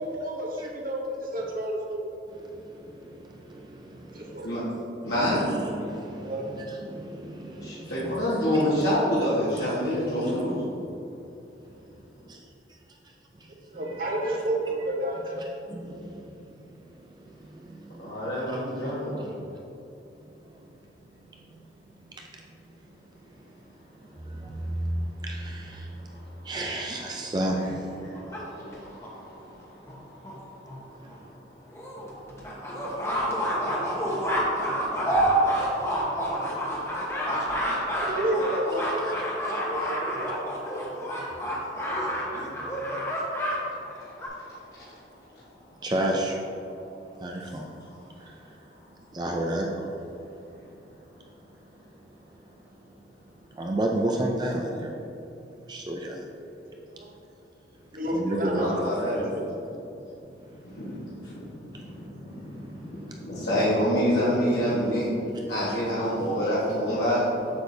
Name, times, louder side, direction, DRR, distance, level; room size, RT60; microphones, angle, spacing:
voice 1, 0.0-2.1 4.1-4.5 6.2-6.5 13.7-15.2 37.9-39.2 39.4-40.4 56.9-57.1 57.9-58.7 59.0-59.4, right 1 dB, 50° right, 0 dB, 0.9 m, -30 dB
voice 2, 2.4-4.4 5.0-8.6 9.6-9.7 10.3-10.4 11.7-11.8 14.1-14.4 15.7-18.6 20.4-20.6 21.3-21.4 22.2-22.4 24.1-26.0 26.4-28.4 30.9-31.2 42.3-43.1 45.8-46.4 47.2-47.7 48.2-48.5 49.1-50.0 53.5-55.0 55.7-56.3 58.1-58.7 60.7-60.8 61.7-61.9 62.5-62.7 63.1-63.2, right 1 dB, 25° right, 0 dB, 0.4 m, -33 dB
voice 3, 5.0-5.5 7.6-10.6 18.0-19.3 28.0-30.4 34.6-34.8 35.5-38.0 44.0-44.1 44.4-44.5 44.8-44.9 58.6-59.3 60.6-67.6, equal, 65° left, -11 dB, 1.4 m, -28 dB
sound 1, 27.5-29.1 29.9-30.0 30.2-30.4 30.7-30.8 31.1-31.2 31.7-43.6 43.9-44.3, right 1 dB, 15° left, 1.0 m, -28 dB
7.9 x 6.7 x 2.7 m, 2.9 s
head